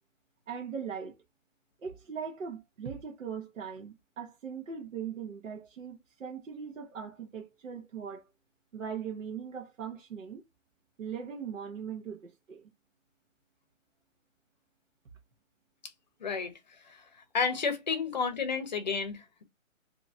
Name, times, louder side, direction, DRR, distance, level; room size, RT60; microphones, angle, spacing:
voice 1, 0.5-1.2 1.8-8.3 8.7-10.4 11.0-12.7, right 7 dB, 70° right, 1.2 m, -40 dB
voice 2, 16.2-16.5 16.8-17.0 17.3-19.4, left 5 dB, 35° left, 0.8 m, -31 dB
3.8 x 2.9 x 2.7 m
hypercardioid pair, 165°, 40 cm